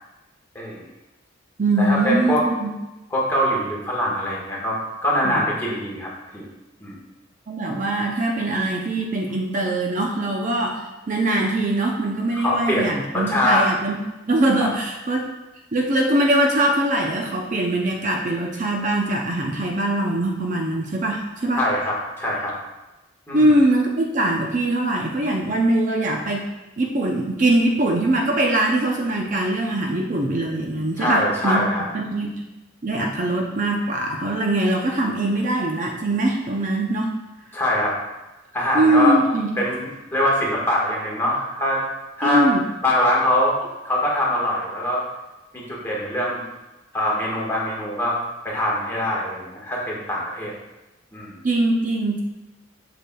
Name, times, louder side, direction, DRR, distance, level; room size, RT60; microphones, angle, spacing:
voice 1, 0.5-0.9 1.8-2.4 3.1-6.5 6.8-7.0 12.3-13.7 21.6-22.5 23.3-23.5 31.0-31.9 37.5-38.0 38.5-39.2 39.6-41.8 42.2-42.5 42.8-43.6 43.8-45.0 45.5-46.4 46.9-48.2 48.4-50.5 51.1-51.4, left 1 dB, 10° left, -5 dB, 1.5 m, -23 dB
voice 2, 1.6-2.7 5.2-5.4 7.5-14.0 14.3-15.3 15.7-21.6 23.3-26.5 26.8-31.6 31.9-32.4 32.8-37.1 38.7-39.5 42.2-42.6 51.4-52.2, right 1 dB, 40° right, 0 dB, 0.6 m, -22 dB
7.9 x 6.0 x 2.3 m, 1.0 s
head